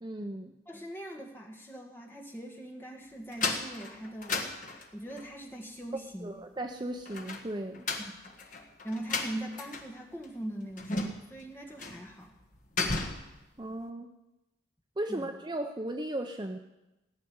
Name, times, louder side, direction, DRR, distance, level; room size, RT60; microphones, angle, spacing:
voice 1, 0.0-0.5 6.2-7.9 13.6-14.1 15.0-16.6, right 1 dB, 25° right, 5 dB, 0.6 m, -36 dB
voice 2, 0.7-4.4 4.9-6.3 8.1-8.2 8.8-12.3 15.1-15.3, right 1 dB, 10° left, 0 dB, 1.8 m, -41 dB
sound 1, 3.3-5.3 7.1-10.0 10.2-10.3 10.8-11.4 11.8-12.1 12.4-13.4, left 3 dB, 40° left, 1.5 m, -34 dB
17.0 x 6.6 x 9.5 m, 1.0 s
head